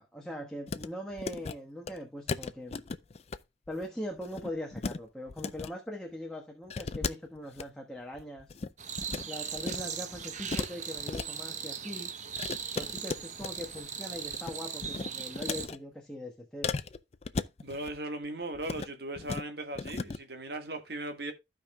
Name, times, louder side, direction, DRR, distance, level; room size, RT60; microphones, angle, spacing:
voice 1, 0.0-2.8 3.7-8.6 9.3-12.1 12.7-16.7, left 1 dB, 5° left, 1.2 m, -41 dB
sound 1, 0.7-0.9 1.1-1.6 1.9-2.0 2.3-3.4 3.7-3.8 4.2-5.0 5.3-5.7 6.7-7.6 8.1-9.3 9.6-9.9 10.1-11.3 12.4-13.9 14.2-14.6 14.8-15.8 16.6-18.0 18.5-18.9 19.2-19.4 19.8-20.2, left 4 dB, 35° left, 0.4 m, -36 dB
sound 2, 8.8-15.7, right 7 dB, 40° right, 0.9 m, -39 dB
voice 2, 17.6-21.3, right 1 dB, 60° right, 1.5 m, -38 dB
15.0 x 5.2 x 2.2 m
head